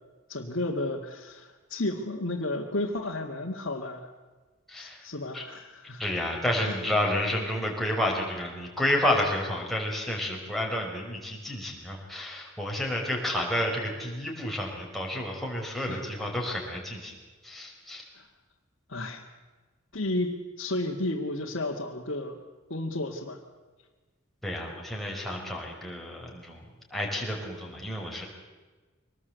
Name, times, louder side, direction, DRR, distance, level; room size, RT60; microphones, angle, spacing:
voice 1, 0.3-4.1 4.7-6.0 6.6-6.7 15.9-16.0 18.1-18.3 18.9-19.2 19.9-22.4 22.7-23.4, left 2 dB, 65° left, -3 dB, 2.1 m, -32 dB
voice 2, 4.7-5.1 5.3-5.4 6.0-17.1 17.4-18.0 24.4-26.6 26.9-28.3, left 1 dB, ahead, -2 dB, 5.3 m, -30 dB
25.0 x 19.5 x 8.2 m, 1.3 s
head